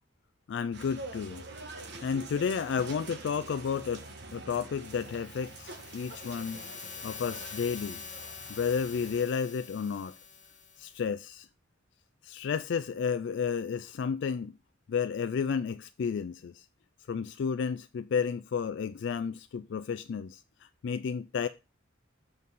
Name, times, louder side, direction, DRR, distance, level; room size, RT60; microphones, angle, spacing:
voice 1, 0.5-1.4 2.0-4.0 4.3-6.6 7.0-8.0 8.5-10.1 10.8-11.5 12.2-14.5 14.9-16.7 17.1-21.5, left 6 dB, 60° left, 0.3 m, -32 dB
sound 1, 0.7-9.2, right 2 dB, 60° right, 1.2 m, -46 dB
sound 2, 4.9-11.1, left 6 dB, 40° left, 1.3 m, -46 dB
7.4 x 4.1 x 5.4 m
head